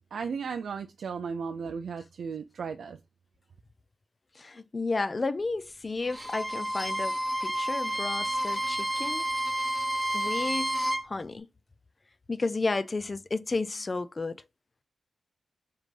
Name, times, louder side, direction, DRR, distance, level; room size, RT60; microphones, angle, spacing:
voice 1, 0.1-3.0, right 5 dB, 80° right, 0.3 m, -35 dB
voice 2, 4.4-7.2 7.4-9.3 10.1-11.5 12.3-14.4, left 3 dB, 30° left, 0.3 m, -32 dB
Bowed string instrument, 6.0-11.1, right 1 dB, 5° right, 0.9 m, -30 dB
3.8 x 3.4 x 3.2 m
wide cardioid pair, 125°, 0 cm